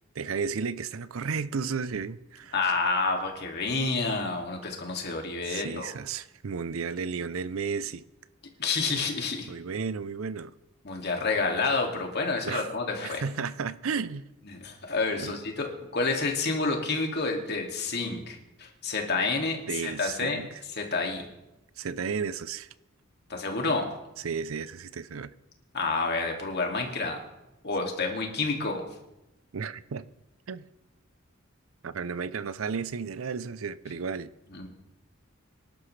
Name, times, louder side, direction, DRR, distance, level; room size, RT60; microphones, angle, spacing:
voice 1, 0.2-2.5 5.5-8.0 9.5-10.5 12.4-12.7 13.0-14.3 15.2-15.4 19.7-20.5 21.8-22.7 24.2-25.3 29.5-30.1 30.5-30.7 31.8-34.3, right 5 dB, 85° right, 0.6 m, -33 dB
voice 2, 2.5-5.9 8.6-9.5 10.8-13.3 14.4-21.2 23.3-23.9 25.7-27.2 27.6-28.9 34.5-34.7, left 3 dB, 55° left, 2.3 m, -29 dB
25.0 x 11.5 x 3.3 m
head